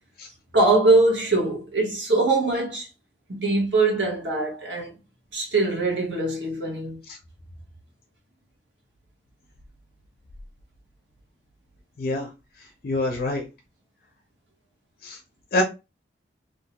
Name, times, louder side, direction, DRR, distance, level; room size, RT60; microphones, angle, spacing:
voice 1, 0.5-2.9 3.3-4.9 5.3-7.0, right 2 dB, 85° right, 1.0 m, -22 dB
voice 2, 12.0-12.3 12.8-13.4 15.0-15.2 15.5-15.6, left 2 dB, 55° left, 0.5 m, -25 dB
2.6 x 2.2 x 2.8 m
head